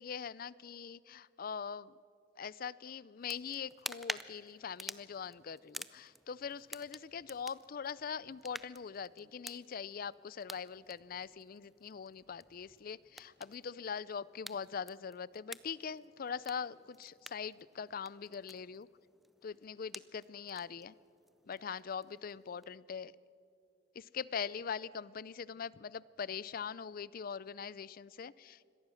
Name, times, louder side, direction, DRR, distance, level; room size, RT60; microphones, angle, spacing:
voice 1, 0.0-1.9 2.4-18.9 19.4-20.9 21.5-23.1 24.0-28.7, left 6 dB, 50° left, 20 dB, 0.5 m, -42 dB
sound 1, 3.2-22.8, equal, ahead, 0.5 m, -51 dB
25.0 x 18.0 x 6.4 m, 2.5 s
head